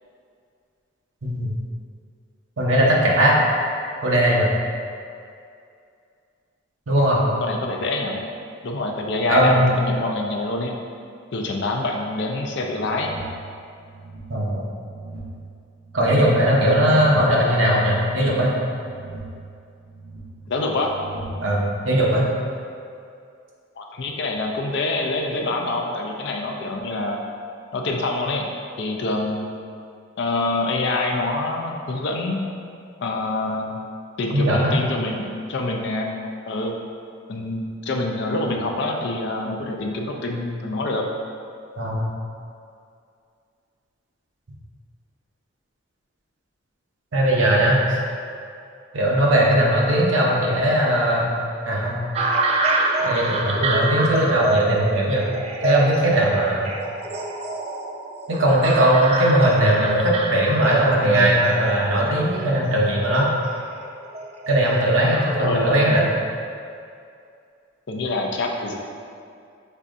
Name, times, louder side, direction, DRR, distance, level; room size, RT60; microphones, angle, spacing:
voice 1, 2.6-3.4 4.0-4.5 6.9-7.2 9.3-9.7 14.3-14.6 15.9-18.6 21.4-22.3 34.3-34.7 41.7-42.1 47.1-47.8 48.9-51.3 51.7-52.0 53.0-55.3 55.6-56.7 58.3-63.3 64.5-66.0, right 1 dB, 70° right, -3 dB, 0.8 m, -19 dB
voice 2, 7.2-8.2 8.6-10.7 11.3-13.1 16.1-16.4 20.5-20.9 23.8-27.2 27.7-28.5 28.8-29.5 30.2-32.4 33.0-33.8 34.2-36.1 36.5-36.7 37.3-41.1 61.0-61.4 65.4-66.0 67.9-68.7, left 2 dB, 60° left, 1 dB, 0.5 m, -26 dB
sound 1, 12.5-21.6, right 2 dB, 50° right, 1.3 m, -41 dB
sound 2, 52.1-65.3, right 2 dB, 30° right, 0.3 m, -27 dB
5.4 x 3.5 x 2.6 m, 2.4 s
head